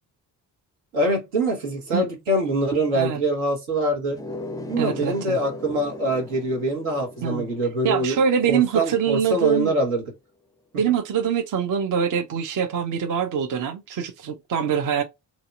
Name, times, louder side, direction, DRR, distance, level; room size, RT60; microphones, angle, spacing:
voice 1, 0.9-4.2 4.7-8.2 8.5-10.0, right 1 dB, 75° right, 1.4 m, -24 dB
sound 1, 4.1-9.4, left 2 dB, 10° left, 0.4 m, -39 dB
voice 2, 4.8-5.4 7.2-7.5 7.8-9.7 10.7-15.0, right 7 dB, 40° right, 0.6 m, -24 dB
2.9 x 2.7 x 2.3 m
hypercardioid pair, 45°, 49 cm